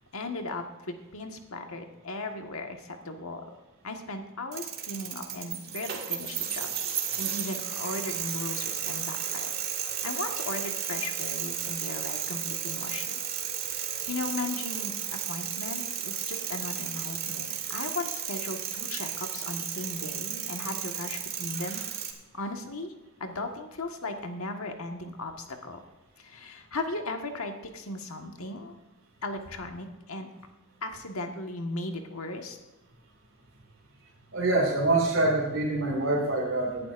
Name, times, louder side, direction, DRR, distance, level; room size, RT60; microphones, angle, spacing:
voice 1, 0.1-3.4 3.8-9.5 10.0-13.2 13.7-21.8 22.3-22.9 23.2-25.8 26.2-28.7 29.2-30.3 30.8-32.6, left 2 dB, 75° left, 4 dB, 1.5 m, -37 dB
Bike back wheel coasting, 4.5-22.1, right 9 dB, 45° right, 1.8 m, -33 dB
voice 2, 34.3-36.9, right 2 dB, 60° right, -3 dB, 2.3 m, -25 dB
18.0 x 11.5 x 2.6 m, 1.1 s
head